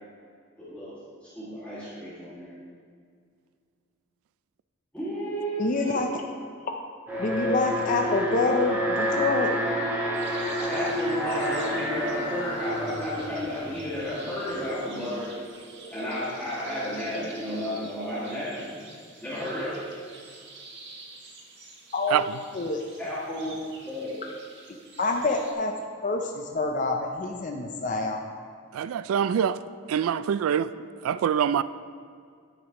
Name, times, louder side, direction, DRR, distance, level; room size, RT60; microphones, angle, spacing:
voice 1, 0.6-2.5 4.9-6.0 10.7-15.5 15.9-18.8 19.2-19.9 23.0-24.2, equal, 5° left, -11 dB, 2.0 m, -33 dB
voice 2, 5.6-6.1 7.2-9.5 21.9-22.2 22.5-22.8 25.0-25.7 26.0-28.2, left 3 dB, 40° left, 2 dB, 0.5 m, -26 dB
Alarm, 7.1-14.2, equal, 10° right, 1.7 m, -29 dB
sound 1, 10.1-25.5, right 2 dB, 55° right, 1.3 m, -46 dB
voice 3, 28.7-29.6 29.9-30.7 31.0-31.6, right 8 dB, 85° right, 15 dB, 0.3 m, -24 dB
10.5 x 9.5 x 3.0 m, 2.2 s
head